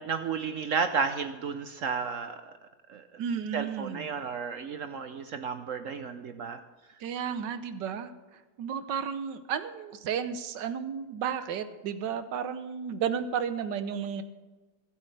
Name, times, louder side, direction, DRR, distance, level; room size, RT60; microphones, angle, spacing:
voice 1, 0.0-2.5 2.9-3.0 3.5-6.6, right 5 dB, 65° right, 9 dB, 0.8 m, -32 dB
voice 2, 3.2-4.1 7.0-8.1 8.6-14.2, right 7 dB, 90° right, 10 dB, 1.5 m, -33 dB
24.5 x 8.4 x 3.3 m, 1.2 s
omnidirectional pair, 1.9 m